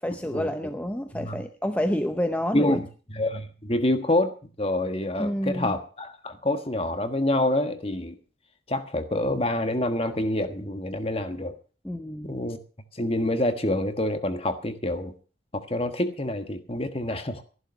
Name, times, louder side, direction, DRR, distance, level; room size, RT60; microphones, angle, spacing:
voice 1, 0.0-2.8 5.2-5.7 11.8-12.3, equal, 10° left, 7 dB, 0.7 m, -28 dB
voice 2, 2.5-8.2 8.7-11.5 12.2-12.6 12.9-15.1 15.5-17.4, left 1 dB, 30° left, 9 dB, 1.4 m, -27 dB
14.5 x 11.5 x 6.1 m, 0.39 s
head